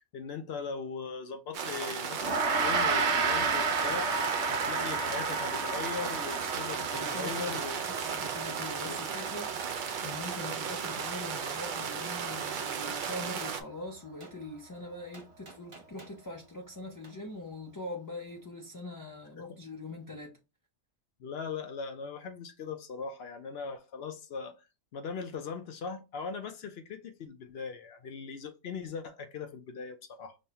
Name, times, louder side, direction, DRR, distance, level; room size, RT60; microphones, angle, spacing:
voice 1, 0.0-7.8 8.9-9.0 19.4-19.6 21.2-24.6 24.9-30.4, left 5 dB, 65° left, 0.8 m, -40 dB
sound 1, 1.5-13.6, right 7 dB, 55° right, 0.6 m, -36 dB
Gong, 2.2-11.7, right 4 dB, 75° right, 1.0 m, -32 dB
voice 2, 6.8-7.6 7.9-20.4, left 2 dB, 30° left, 0.4 m, -43 dB
Gunshot gunfire, 13.0-13.2 14.2-14.4 15.1-16.2 17.0-17.2, right 3 dB, 30° right, 0.9 m, -52 dB
5.3 x 2.2 x 2.8 m
omnidirectional pair, 1.2 m